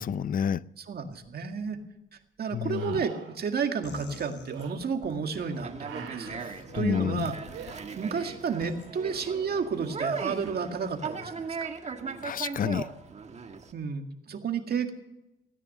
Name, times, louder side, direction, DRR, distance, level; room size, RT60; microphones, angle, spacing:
voice 1, 0.0-0.6 2.5-3.0 6.8-7.3 12.2-12.9, left 8 dB, 45° left, 0.5 m, -29 dB
voice 2, 0.8-1.8 2.4-6.4 6.7-7.4 7.7-11.3 11.6-11.7 13.7-14.9, right 5 dB, 50° right, 2.0 m, -31 dB
sound 1, 1.1-1.2 2.7-3.4 4.5-4.7 5.8-6.5 7.5-7.8 8.9-9.6 12.8-12.9, right 7 dB, 75° right, 3.7 m, -44 dB
sound 2, 3.8-5.2 6.3-6.8 7.4-7.7 8.6-8.9, left 4 dB, 70° left, 4.1 m, -45 dB
Conversation, 5.3-13.7, right 5 dB, 35° right, 1.6 m, -38 dB
17.0 x 9.8 x 6.8 m
cardioid pair, 90°, 20 cm